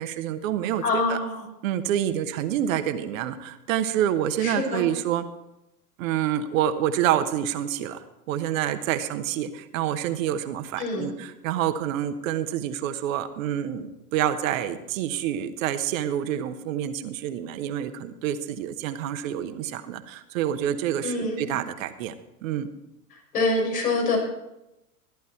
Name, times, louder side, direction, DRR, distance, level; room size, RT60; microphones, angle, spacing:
voice 1, 0.0-0.8 1.1-1.2 1.6-5.2 6.0-22.1 22.4-22.7, right 10 dB, 55° right, 9 dB, 1.1 m, -27 dB
voice 2, 0.8-1.5 4.4-4.9 10.8-11.1 21.0-21.6 23.1-24.2, left 2 dB, 70° left, -1 dB, 5.9 m, -26 dB
14.0 x 10.5 x 4.4 m, 0.91 s
hypercardioid pair, 95°, 47 cm